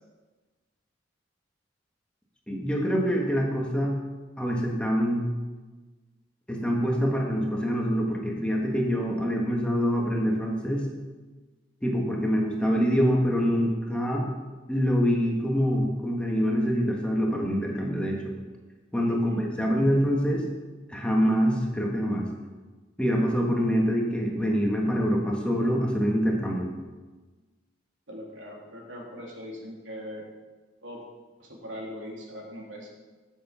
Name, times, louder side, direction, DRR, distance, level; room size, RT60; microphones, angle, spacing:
voice 1, 2.5-4.0 4.4-5.2 6.5-10.9 11.8-14.3 14.7-18.2 18.9-20.5 20.9-22.2 23.0-26.7, equal, 5° left, -1 dB, 1.6 m, -25 dB
voice 2, 19.1-19.4 28.1-30.3 30.8-31.0 31.4-32.9, equal, 80° right, -1 dB, 2.8 m, -40 dB
14.0 x 7.2 x 5.7 m, 1.3 s
head